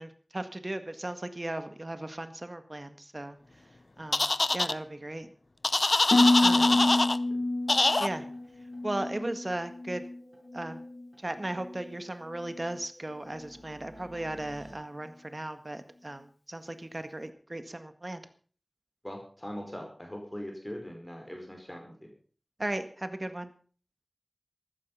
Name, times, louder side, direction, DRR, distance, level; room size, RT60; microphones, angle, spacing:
voice 1, 0.0-3.4 4.0-5.3 6.4-6.7 8.0-8.3 8.8-10.0 10.5-10.8 11.2-18.2 22.6-23.5, right 1 dB, 45° right, 9 dB, 1.8 m, -36 dB
sound 1, 4.1-4.7 5.6-7.2 7.7-8.1, left 2 dB, 70° left, 0.6 m, -24 dB
Harp, 6.1-10.2 10.5-11.1 11.6-11.9, left 2 dB, 85° left, 1.3 m, -28 dB
voice 2, 6.1-7.4 19.0-22.1, equal, 20° left, 2 dB, 5.1 m, -42 dB
sound 2, 8.3-8.4 8.7-8.8 9.1-9.2 9.5-9.6 9.9-11.2 11.5-14.7, right 1 dB, 70° right, 6.6 m, -54 dB
14.5 x 12.5 x 5.6 m, 0.43 s
wide cardioid pair, 40°, 0 cm